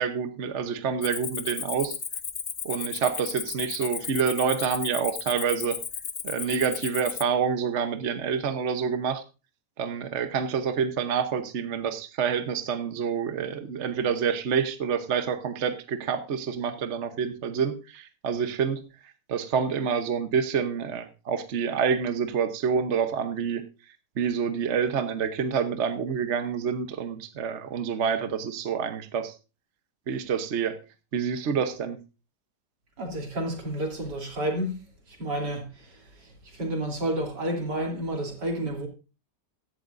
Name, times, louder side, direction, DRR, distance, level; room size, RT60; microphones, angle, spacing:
voice 1, 0.0-2.0 2.6-5.8 6.2-9.2 9.8-23.6 24.2-29.3 30.1-30.8 31.1-32.0, right 6 dB, 45° right, 1.1 m, -27 dB
Cricket, 1.0-7.2, left 7 dB, 50° left, 0.6 m, -34 dB
voice 2, 33.0-34.8 35.1-38.9, right 1 dB, 80° right, 3.8 m, -31 dB
15.5 x 12.0 x 2.6 m
omnidirectional pair, 1.8 m